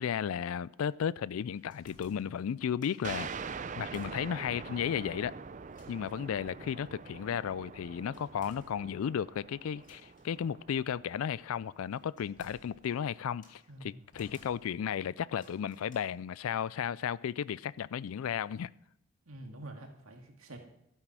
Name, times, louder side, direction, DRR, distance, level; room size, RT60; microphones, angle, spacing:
voice 1, 0.0-5.3 5.9-18.7, left 8 dB, 80° left, 0.3 m, -34 dB
sound 1, 1.5-3.1 3.5-4.6 4.9-5.0 5.7-6.3 8.1-9.2 9.8-10.4 11.5-13.7 14.1-15.0 15.3-16.0, left 2 dB, 40° left, 2.4 m, -60 dB
sound 2, 3.0-12.3, right 5 dB, 35° right, 0.4 m, -45 dB
voice 2, 13.7-14.1 19.3-20.6, right 1 dB, 85° right, 2.1 m, -47 dB
12.5 x 9.0 x 6.1 m
head